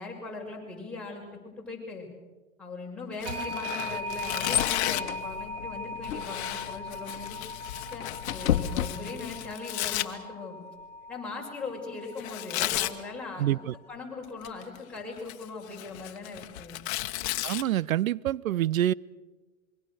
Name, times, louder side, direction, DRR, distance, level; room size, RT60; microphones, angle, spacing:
voice 1, 0.0-2.1 2.6-7.4 7.9-10.6 11.1-13.6 13.9-16.8, left 3 dB, ahead, 6.3 m, -40 dB
Tearing, 3.2-5.2 6.0-10.1 12.2-13.0 14.2-14.8 15.2-17.6, left 15 dB, 55° left, 1.4 m, -34 dB
sound 1, 3.3-13.9, left 1 dB, 60° right, 3.7 m, -40 dB
sound 2, 3.8-9.5, left 10 dB, 75° left, 1.3 m, -34 dB
voice 2, 13.4-13.7 17.4-18.9, right 12 dB, 85° right, 0.6 m, -26 dB
27.0 x 23.0 x 6.5 m
hypercardioid pair, 120°, 40 cm